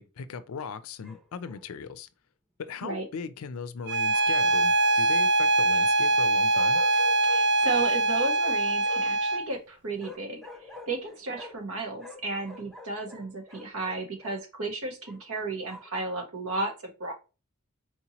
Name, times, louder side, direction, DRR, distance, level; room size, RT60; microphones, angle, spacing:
voice 1, 0.0-2.1 2.6-6.8, left 5 dB, 75° left, 0.4 m, -38 dB
Bark, 1.0-1.6 4.1-5.2 6.5-7.4 8.1-9.2 10.0-11.7 12.0-14.4 15.0-16.0, left 3 dB, ahead, 0.9 m, -47 dB
Bowed string instrument, 3.9-9.5, right 2 dB, 55° right, 0.5 m, -23 dB
voice 2, 7.3-17.1, right 3 dB, 80° right, 1.2 m, -34 dB
4.3 x 2.9 x 2.8 m
head